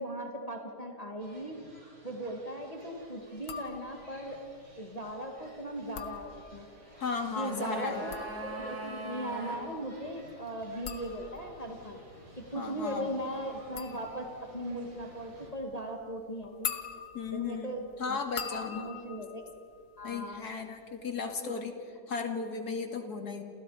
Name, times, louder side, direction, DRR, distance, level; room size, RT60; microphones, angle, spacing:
voice 1, 0.0-1.6 2.0-4.4 4.8-6.7 7.4-12.0 12.4-16.7 17.3-18.2 18.5-19.4 20.0-20.4 21.4-21.6, right 1 dB, 20° left, 2 dB, 2.2 m, -38 dB
sound 1, 1.2-15.5, right 1 dB, 40° right, 5.3 m, -55 dB
sound 2, 3.4-4.2 5.8-6.8 7.8-20.5 20.8-21.4, left 7 dB, 85° left, 2.0 m, -44 dB
voice 2, 7.0-8.0 12.5-13.1 17.1-18.9 20.0-21.7 22.1-23.4, left 5 dB, 60° left, 5 dB, 2.7 m, -35 dB
sound 3, 7.0-9.6 9.9-10.0, right 2 dB, 75° right, 4.7 m, -42 dB
30.0 x 28.5 x 5.1 m, 2.4 s
omnidirectional pair, 1.9 m